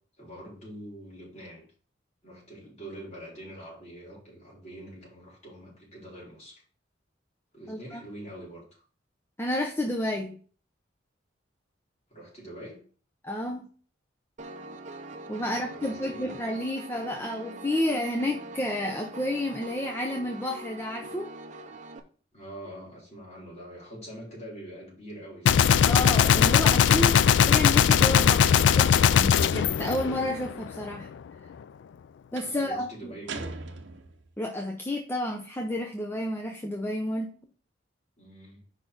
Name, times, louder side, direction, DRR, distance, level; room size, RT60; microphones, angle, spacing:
voice 1, 0.2-1.6 2.2-6.6 7.5-8.6 12.1-12.8 15.4-16.3 22.3-25.6 32.4-33.6 38.2-38.6, right 1 dB, 35° left, -5 dB, 3.5 m, -44 dB
voice 2, 7.7-8.0 9.4-10.4 13.2-13.7 15.3-21.3 25.9-31.1 32.3-33.1 34.4-37.3, left 1 dB, 10° left, 3 dB, 0.6 m, -31 dB
Piano, 14.4-22.0, right 2 dB, 40° right, 0.7 m, -43 dB
Gunshot gunfire, 25.5-30.7, left 8 dB, 70° left, 0.3 m, -20 dB
sound 1, 28.4-29.0 32.4-32.7 33.3-34.4, right 4 dB, 75° right, 0.7 m, -40 dB
5.2 x 4.2 x 5.9 m, 0.43 s
head